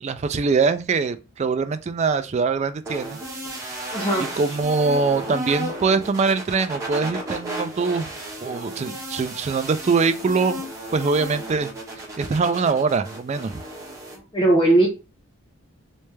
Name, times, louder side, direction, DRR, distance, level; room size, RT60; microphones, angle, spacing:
voice 1, 0.0-3.2 4.4-8.1 8.4-10.6 10.9-11.7 12.2-13.6, right 4 dB, 35° right, 0.3 m, -23 dB
sound 1, 2.8-14.2, right 1 dB, 15° right, 1.3 m, -34 dB
voice 2, 3.9-4.3 14.3-14.9, right 2 dB, 25° left, 0.7 m, -18 dB
3.2 x 3.2 x 3.2 m
head